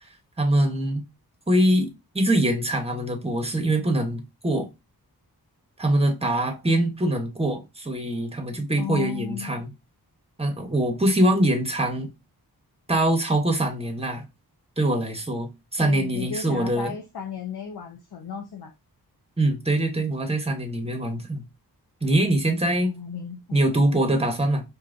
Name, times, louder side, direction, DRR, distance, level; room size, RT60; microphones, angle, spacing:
voice 1, 0.4-1.0 1.5-4.7 5.8-9.7 10.4-12.1 12.9-14.2 14.8-16.9 19.4-21.4 22.0-22.9 23.5-24.6, right 1 dB, 15° right, 1.0 m, -23 dB
voice 2, 8.8-9.6 15.7-18.7 22.8-23.6, left 7 dB, 75° left, 0.7 m, -34 dB
4.7 x 2.8 x 2.6 m
wide cardioid pair, 65°, 38 cm